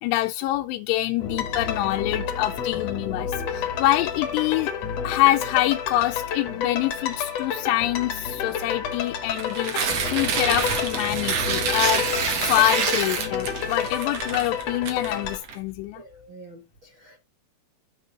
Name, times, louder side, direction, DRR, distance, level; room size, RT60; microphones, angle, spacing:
voice 1, 0.0-4.7 5.0-9.8 10.1-12.1 12.4-16.0, left 15 dB, 90° left, 2.7 m, -25 dB
sound 1, 1.2-15.4, left 7 dB, 70° left, 1.5 m, -30 dB
Tearing, 9.3-15.5, right 6 dB, 60° right, 1.7 m, -27 dB
voice 2, 15.9-17.2, right 2 dB, 80° right, 1.1 m, -47 dB
9.0 x 5.2 x 3.8 m
omnidirectional pair, 4.8 m